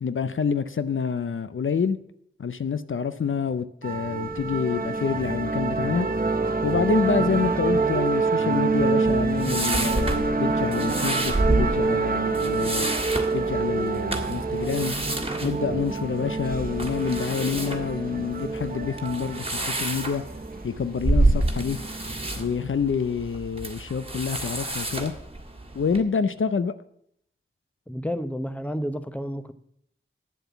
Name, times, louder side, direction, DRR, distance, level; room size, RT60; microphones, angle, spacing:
voice 1, 0.0-2.0 2.4-6.1 6.6-13.0 13.3-14.9 15.4-20.2 20.6-21.8 22.4-25.1 25.7-26.7, left 6 dB, 70° left, 0.6 m, -27 dB
sound 1, 3.8-22.6, right 3 dB, 45° right, 0.9 m, -27 dB
sound 2, 9.0-26.0, right 2 dB, 25° right, 1.8 m, -29 dB
voice 2, 27.9-29.5, equal, 5° left, 0.9 m, -30 dB
9.5 x 7.7 x 7.0 m
wide cardioid pair, 45°, 21 cm